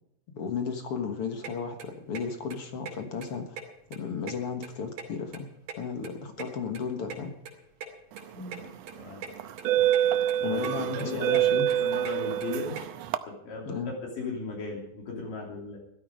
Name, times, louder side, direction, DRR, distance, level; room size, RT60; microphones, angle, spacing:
voice 1, 0.4-3.6 3.9-5.5 5.8-7.4 10.4-11.7 13.7-13.9, left 5 dB, 55° left, 6 dB, 1.9 m, -34 dB
sound 1, 1.4-1.5 1.8-2.2 2.5-2.6 2.9-3.0 3.2-5.4 5.7-7.2 7.5-7.6 7.8-7.9 8.2-8.3 8.5-8.6 8.9-9.3 9.6-10.0 10.3-10.7 11.0-12.8, right 6 dB, 60° right, 3.9 m, -40 dB
voice 2, 8.3-8.7 9.0-9.2 10.4-12.8 13.3-15.8, left 3 dB, 75° left, -2 dB, 4.5 m, -37 dB
sound 2, 8.4-8.6 9.4-13.2, right 12 dB, 80° right, 1.5 m, -26 dB
15.5 x 13.0 x 5.2 m, 0.80 s
omnidirectional pair, 3.9 m